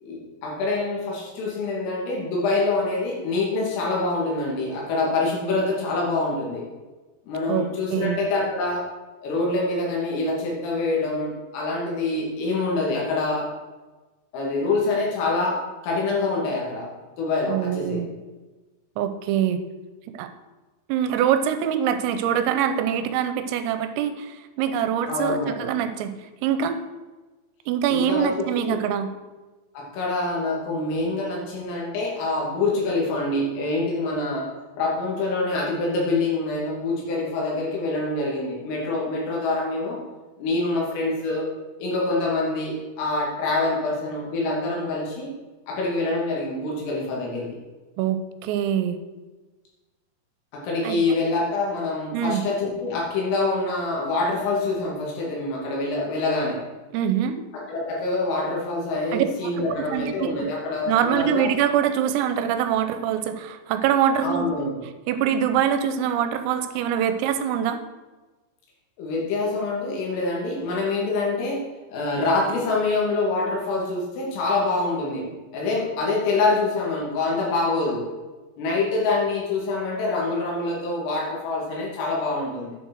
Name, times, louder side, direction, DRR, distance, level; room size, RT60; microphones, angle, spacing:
voice 1, 0.0-6.7 7.2-8.8 9.2-13.5 14.3-15.6 15.8-16.9 17.2-18.0 25.1-25.7 27.9-28.8 29.7-34.5 34.8-40.0 40.4-41.5 41.8-45.3 45.7-47.6 50.5-56.6 57.5-61.5 64.2-64.8 69.0-71.6 71.9-75.3 75.5-78.1 78.6-82.8, left 3 dB, 70° left, -3 dB, 5.1 m, -25 dB
voice 2, 7.5-8.2 17.5-18.1 19.0-19.6 20.1-20.3 20.9-26.1 26.4-26.8 27.7-29.1 48.0-49.0 50.8-51.0 52.1-52.4 56.9-57.4 59.1-59.3 59.6-59.7 59.9-60.3 60.9-64.5 65.1-67.8, right 9 dB, 90° right, 9 dB, 3.4 m, -24 dB
10.5 x 6.4 x 6.4 m, 1.2 s
omnidirectional pair, 6.0 m